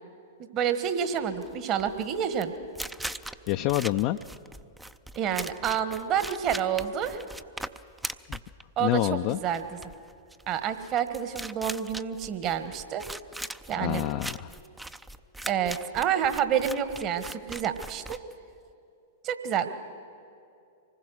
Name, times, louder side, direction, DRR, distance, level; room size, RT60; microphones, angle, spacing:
voice 1, 0.5-2.5 5.1-7.2 8.8-9.6 10.5-13.1 13.7-14.0 15.5-18.2 19.2-19.7, right 8 dB, 35° right, 10 dB, 1.4 m, -28 dB
sound 1, 1.3-18.7, right 1 dB, 5° right, 0.5 m, -40 dB
voice 2, 3.5-4.2 8.3-8.4 8.8-9.4 13.8-14.5, left 16 dB, 45° left, 7 dB, 0.5 m, -27 dB
25.5 x 20.0 x 6.4 m, 2.5 s
figure-of-eight pair, 105°, 0 cm